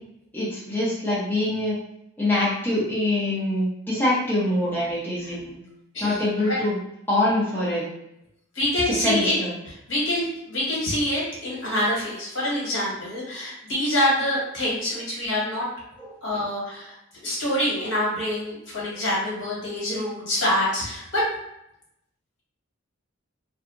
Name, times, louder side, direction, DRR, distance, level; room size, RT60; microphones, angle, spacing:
voice 1, 0.3-1.8 2.2-5.6 6.0-6.8 7.1-7.8 9.0-9.5 16.0-16.1, left 1 dB, 10° left, -10 dB, 0.7 m, -24 dB
voice 2, 8.5-9.3 9.6-15.7 16.2-16.9 17.2-21.3, left 1 dB, 65° left, -6 dB, 1.3 m, -26 dB
2.7 x 2.4 x 2.5 m, 0.80 s
head